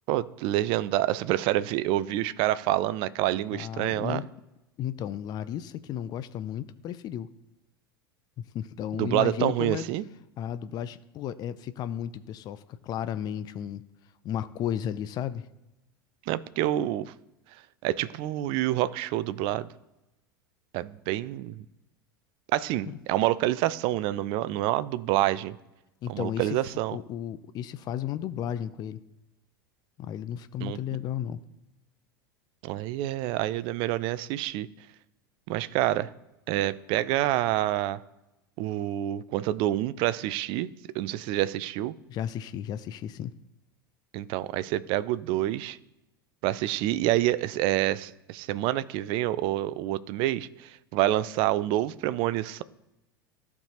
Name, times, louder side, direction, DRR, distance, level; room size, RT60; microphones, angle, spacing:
voice 1, 0.1-4.3 9.0-10.0 16.3-17.1 17.8-19.7 20.7-21.6 22.5-25.6 26.1-27.0 30.6-30.8 32.6-34.7 35.5-36.1 36.5-38.0 38.6-40.7 40.9-41.9 44.1-45.8 46.4-52.6, right 14 dB, 45° right, 0.4 m, -27 dB
voice 2, 3.5-4.3 4.8-7.3 8.4-9.9 10.4-13.8 14.2-15.4 22.9-23.0 26.0-26.6 26.9-29.0 30.0-31.4 42.1-43.3, left 10 dB, 35° left, 0.4 m, -33 dB
14.0 x 4.7 x 2.9 m
figure-of-eight pair, 80°, 12 cm